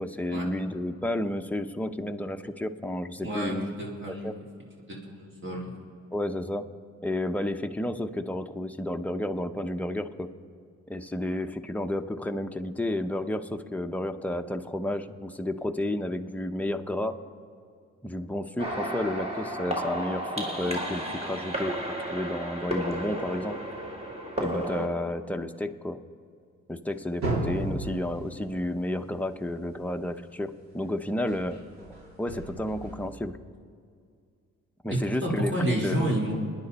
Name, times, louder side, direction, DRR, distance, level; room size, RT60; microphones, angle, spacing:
voice 1, 0.0-3.8 4.1-4.3 6.1-6.6 7.0-10.3 10.9-17.1 18.0-23.5 24.4-26.0 26.7-31.6 31.9-33.4 34.8-36.1, left 1 dB, 5° left, 6 dB, 0.8 m, -31 dB
voice 2, 3.2-4.3 4.9-5.6 34.9-36.3, right 1 dB, 40° right, -3 dB, 3.6 m, -29 dB
sound 1, 18.6-24.9, right 1 dB, 20° right, 2.4 m, -33 dB
sound 2, 26.9-30.2 31.3-33.1, right 1 dB, 65° right, 4.0 m, -35 dB
29.5 x 10.5 x 4.2 m, 2.2 s
cardioid pair, 90°, 30 cm